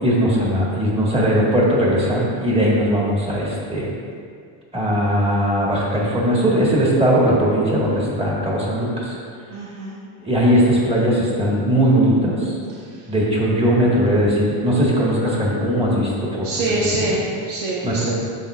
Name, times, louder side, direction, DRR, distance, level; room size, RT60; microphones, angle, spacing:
voice 1, 0.0-3.9 4.7-9.1 10.2-12.5 13.1-16.4 16.8-17.1 17.8-18.1, equal, 15° right, -5 dB, 1.6 m, -19 dB
voice 2, 9.5-9.9 16.4-18.1, right 2 dB, 85° right, -5 dB, 1.2 m, -24 dB
10.5 x 7.4 x 2.4 m, 2.2 s
cardioid pair, 145°, 45 cm